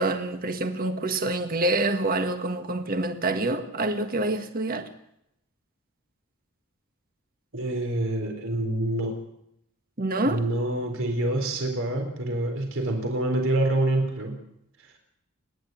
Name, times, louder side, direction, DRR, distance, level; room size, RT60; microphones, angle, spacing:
voice 1, 0.0-4.9 10.0-10.4, right 2 dB, 40° right, 1.7 m, -26 dB
voice 2, 7.5-9.2 10.2-14.4 14.8-15.0, right 1 dB, 65° right, 4.3 m, -26 dB
29.0 x 11.0 x 9.3 m
head